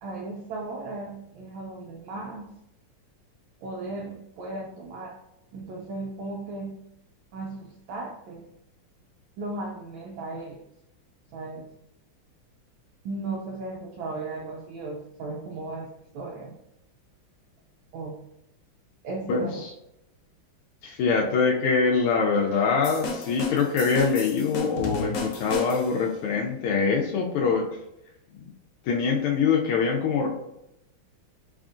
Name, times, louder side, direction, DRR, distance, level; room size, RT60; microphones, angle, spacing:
voice 1, 0.0-2.5 3.6-5.2 5.5-6.7 7.3-8.5 9.4-10.6 11.3-11.7 13.0-16.5 17.9-18.2 19.0-19.6 22.3-22.6, right 2 dB, 75° right, -1 dB, 1.3 m, -36 dB
voice 2, 19.3-19.7 20.8-27.6 28.9-30.3, left 5 dB, 90° left, -1 dB, 1.5 m, -24 dB
sound 1, 22.8-26.1, left 3 dB, 70° left, 1.3 m, -33 dB
4.1 x 3.6 x 2.5 m, 0.82 s
omnidirectional pair, 2.3 m